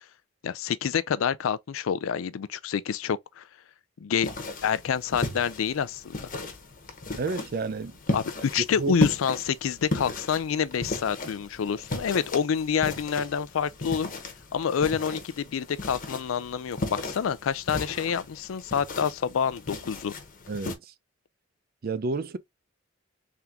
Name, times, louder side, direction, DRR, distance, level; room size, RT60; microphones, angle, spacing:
voice 1, 0.4-3.4 4.0-4.3 4.6-6.1 8.1-14.1 14.5-20.1, left 7 dB, 90° left, 0.4 m, -27 dB
sound 1, 4.2-20.7, left 2 dB, 45° left, 0.9 m, -35 dB
voice 2, 7.2-8.0 8.8-8.9 20.5-20.9 21.8-22.4, right 4 dB, 50° right, 0.4 m, -30 dB
3.7 x 3.5 x 2.8 m
head